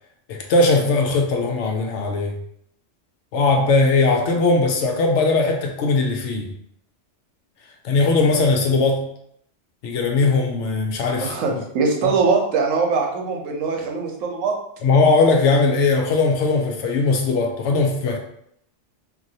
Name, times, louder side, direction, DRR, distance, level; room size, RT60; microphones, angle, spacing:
voice 1, 0.3-2.4 3.3-6.5 7.8-9.1 9.8-11.6 12.0-12.2 14.8-18.2, left 3 dB, 75° left, 2 dB, 0.9 m, -19 dB
voice 2, 11.2-14.6, right 4 dB, 85° right, 1 dB, 1.0 m, -22 dB
3.0 x 2.6 x 2.7 m, 0.72 s
omnidirectional pair, 1.3 m